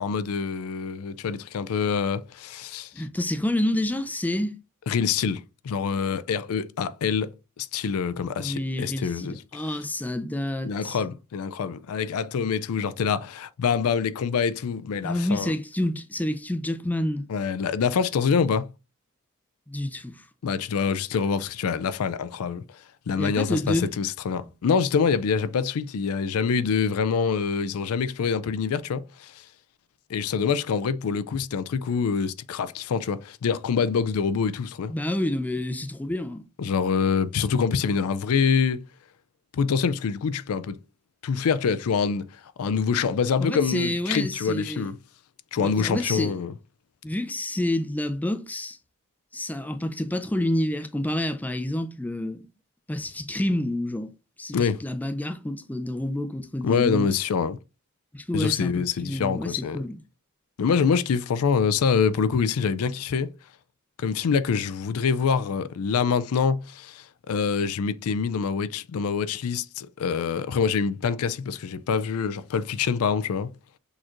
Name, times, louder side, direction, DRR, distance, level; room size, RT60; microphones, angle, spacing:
voice 1, 0.0-2.9 4.9-7.3 7.6-9.6 10.6-15.5 17.3-18.7 20.4-22.8 23.1-29.4 30.1-34.9 36.6-38.8 39.5-40.8 41.2-42.3 42.6-45.0 45.5-46.5 54.5-54.8 56.6-57.6 58.3-59.8 60.6-63.3 64.0-73.5, left 6 dB, 80° left, 0.4 m, -25 dB
voice 2, 2.9-4.6 8.4-11.0 15.0-17.3 19.7-20.3 23.2-23.9 34.9-36.4 43.4-44.9 45.6-46.3 47.0-48.8 49.3-52.4 52.9-54.1 54.4-57.1 58.1-60.0, left 1 dB, 5° left, 0.4 m, -28 dB
6.3 x 3.0 x 2.5 m
head